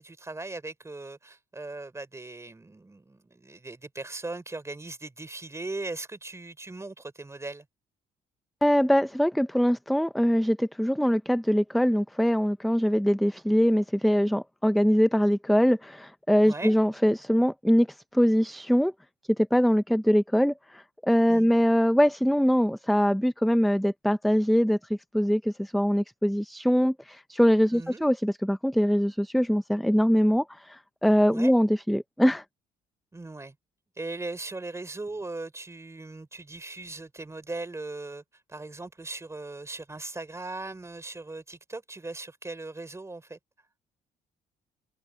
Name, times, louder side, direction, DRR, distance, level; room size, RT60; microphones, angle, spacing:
voice 1, 0.0-7.7 16.4-16.8 21.3-21.5 27.7-28.0 31.3-31.5 33.1-33.6 34.0-38.2 38.5-43.4, right 2 dB, 15° right, 3.4 m, -39 dB
voice 2, 8.6-18.9 19.4-32.4, equal, ahead, 0.6 m, -23 dB
cardioid pair, 95°, 17 cm